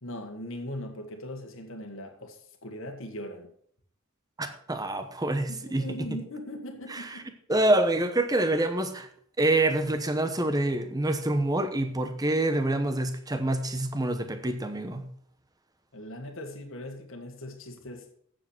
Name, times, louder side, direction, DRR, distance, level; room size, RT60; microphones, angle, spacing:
voice 1, 0.0-3.5 5.5-7.2 15.9-18.1, left 1 dB, 60° left, 1.6 m, -40 dB
voice 2, 4.4-5.8 6.9-7.1 7.5-9.1 9.4-15.1, right 1 dB, 15° right, 1.0 m, -26 dB
8.6 x 7.3 x 5.9 m
head